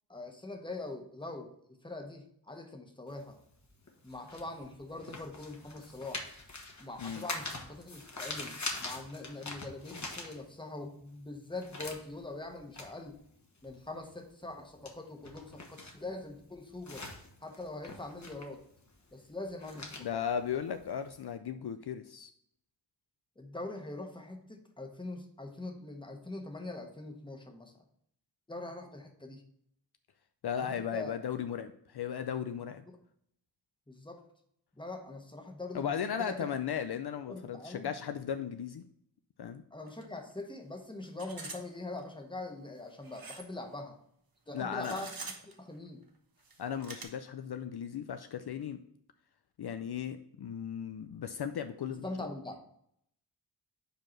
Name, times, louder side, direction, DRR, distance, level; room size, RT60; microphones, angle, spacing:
voice 1, 0.1-1.5 1.8-3.4 4.0-6.2 6.8-13.1 13.6-17.1 17.4-18.6 19.1-20.2 23.4-27.7 28.5-29.4 30.6-31.1 32.9-33.0 33.9-34.2 34.8-36.4 37.3-37.9 39.7-44.0 44.5-45.1 45.4-46.0 52.0-52.6, left 2 dB, 10° left, 3 dB, 1.2 m, -43 dB
sound 1, 3.1-10.9 11.2-21.3, left 2 dB, 40° left, 1.5 m, -44 dB
voice 2, 20.0-22.3 30.4-32.8 35.7-38.8 39.4-39.6 44.5-45.0 46.6-48.8 49.6-52.3, left 8 dB, 65° left, 9 dB, 0.5 m, -36 dB
sound 2, 39.9-40.0 40.3-40.4 41.0-41.6 42.0-42.1 43.0-43.5 44.7-45.5 46.4-47.0, right 3 dB, 55° right, 1.2 m, -45 dB
5.2 x 4.6 x 5.7 m, 0.69 s
wide cardioid pair, 90°, 43 cm